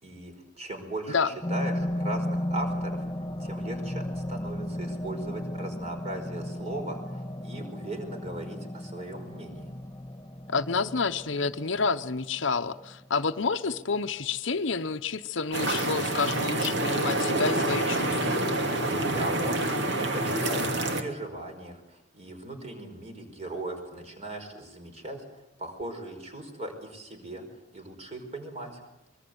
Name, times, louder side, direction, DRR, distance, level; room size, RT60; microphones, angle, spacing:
voice 1, 0.0-1.2 1.5-3.1 3.4-9.7 19.1-25.3 25.6-27.4 27.7-28.8, right 1 dB, 30° right, 5 dB, 5.0 m, -38 dB
sound 1, 1.4-14.4 14.8-14.9, left 1 dB, 15° left, 2.4 m, -35 dB
voice 2, 10.5-18.5, left 4 dB, 60° left, 10 dB, 0.8 m, -29 dB
sound 2, 15.5-21.0, right 1 dB, 55° right, 2.6 m, -27 dB
25.5 x 22.5 x 8.0 m, 0.93 s
head